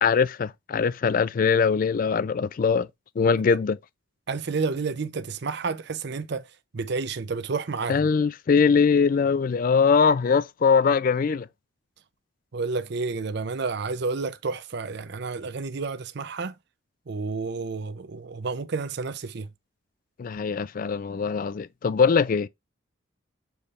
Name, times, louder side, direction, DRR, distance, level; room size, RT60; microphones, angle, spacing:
voice 1, 0.0-2.9 3.2-3.8 7.9-11.5 20.2-22.5, left 5 dB, 45° left, 0.3 m, -22 dB
voice 2, 4.3-6.5 6.7-8.0 12.5-16.5 17.1-19.5, right 4 dB, 55° right, 0.6 m, -30 dB
7.0 x 3.3 x 4.2 m
head